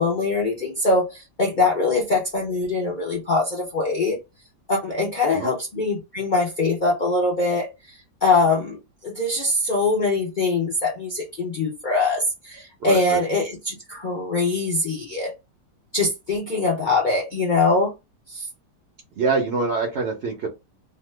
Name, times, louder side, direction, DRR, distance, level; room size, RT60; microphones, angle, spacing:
voice 1, 0.0-4.2 4.7-7.7 8.2-8.8 9.0-15.3 15.9-17.9 18.3-18.5, left 3 dB, 60° left, -2 dB, 0.5 m, -22 dB
voice 2, 12.8-13.2 19.2-20.5, right 4 dB, 60° right, 2 dB, 0.6 m, -24 dB
2.8 x 2.1 x 3.2 m, 0.24 s
omnidirectional pair, 1.8 m